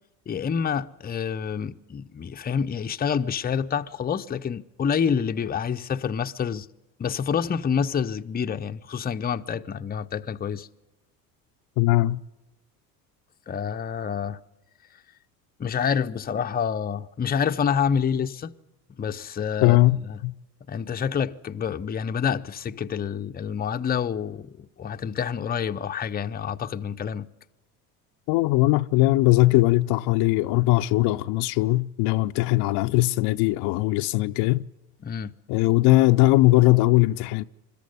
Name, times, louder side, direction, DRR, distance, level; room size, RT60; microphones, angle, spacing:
voice 1, 0.3-6.7 7.0-10.7 13.5-14.4 15.6-18.5 19.0-20.2 20.7-27.3 35.0-35.3, left 7 dB, 20° left, 0.6 m, -27 dB
voice 2, 11.8-12.2 19.6-20.0 20.2-20.3 28.3-34.6 35.5-37.4, left 19 dB, 65° left, 0.6 m, -20 dB
22.0 x 13.5 x 9.5 m
hypercardioid pair, 75°, 43 cm